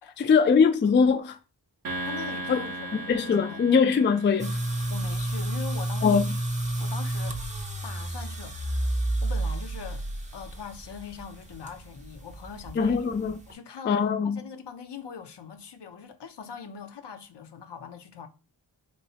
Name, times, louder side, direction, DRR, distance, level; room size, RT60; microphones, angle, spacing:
voice 1, 0.2-1.4 2.5-2.6 2.9-4.6 6.0-6.3 12.8-13.4 13.9-14.4, left 5 dB, 30° left, 0.3 m, -22 dB
sound 1, 1.8-5.3, right 1 dB, 50° right, 0.7 m, -37 dB
voice 2, 2.0-3.0 3.3-3.8 4.9-6.2 6.8-10.1 10.3-13.0 13.5-18.3, left 6 dB, 70° left, 0.6 m, -42 dB
sound 2, 4.4-13.5, right 1 dB, 15° right, 0.6 m, -31 dB
3.0 x 3.0 x 2.8 m
cardioid pair, 45°, 43 cm